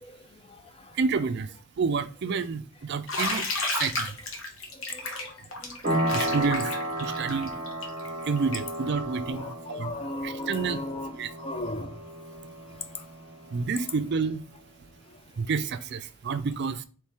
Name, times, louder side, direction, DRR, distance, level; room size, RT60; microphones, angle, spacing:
voice 1, 0.0-1.0 4.7-5.4 5.6-6.2 9.3-12.1 12.9-13.0, left 2 dB, 25° left, 0.5 m, -37 dB
voice 2, 1.0-1.5 1.8-3.5 3.8-4.1 6.1-6.7 7.0-7.5 8.3-9.4 9.8-9.9 10.2-10.8 11.2-11.3 13.5-14.4 15.4-16.8, right 5 dB, 55° right, 0.4 m, -29 dB
Bathtub (filling or washing), 3.1-8.8, left 2 dB, 70° left, 1.1 m, -32 dB
sound 1, 5.8-14.2, right 1 dB, 35° right, 1.2 m, -33 dB
4.5 x 3.2 x 3.4 m
head